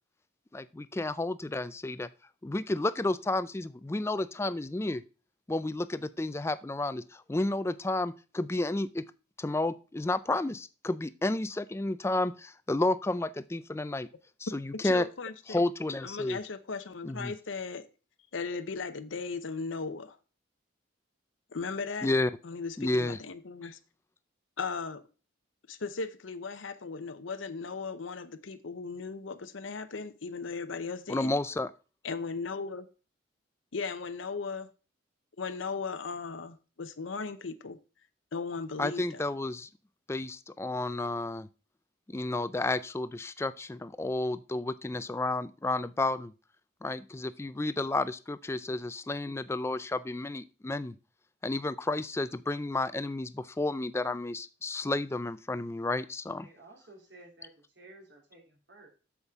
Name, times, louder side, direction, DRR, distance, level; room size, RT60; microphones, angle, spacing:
voice 1, 0.5-2.1 2.4-5.0 5.5-9.0 9.4-14.1 14.4-15.1 15.5-16.4 17.0-17.3 22.0-22.3 22.8-23.2 31.1-31.7 38.8-39.7 40.1-41.5 42.1-46.3 46.8-51.0 51.4-56.5, left 2 dB, 15° left, 0.3 m, -31 dB
voice 2, 14.8-15.6 16.0-17.9 18.3-20.2 21.5-22.1 22.4-23.8 24.6-25.0 25.7-31.3 32.0-32.9 33.7-34.7 35.4-37.8 38.3-39.2, left 4 dB, 85° left, 0.8 m, -37 dB
voice 3, 56.4-58.9, right 2 dB, 65° right, 3.0 m, -54 dB
8.0 x 7.2 x 3.5 m
head